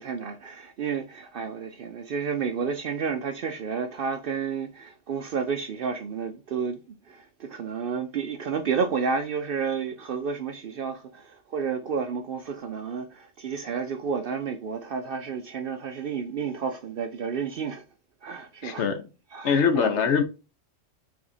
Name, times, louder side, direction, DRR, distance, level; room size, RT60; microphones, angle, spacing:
voice 1, 0.0-6.8 7.1-17.8 18.2-18.9 19.3-20.1, right 6 dB, 60° right, 0.6 m, -31 dB
voice 2, 18.6-19.0 19.4-20.2, left 6 dB, 65° left, 1.0 m, -22 dB
4.9 x 3.5 x 2.7 m
omnidirectional pair, 1.3 m